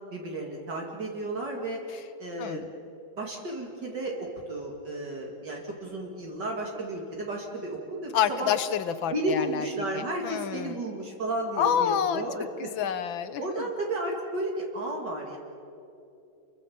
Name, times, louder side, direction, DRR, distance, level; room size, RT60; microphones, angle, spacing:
voice 1, 0.1-1.8 2.2-2.7 3.2-8.5 9.1-12.7 13.4-15.4, right 1 dB, 60° right, -1 dB, 2.8 m, -33 dB
voice 2, 2.4-2.7 8.1-9.7 10.0-10.8 11.6-12.2 12.6-13.4, left 9 dB, 75° left, 12 dB, 1.8 m, -28 dB
29.0 x 22.5 x 7.2 m, 2.8 s
omnidirectional pair, 2.2 m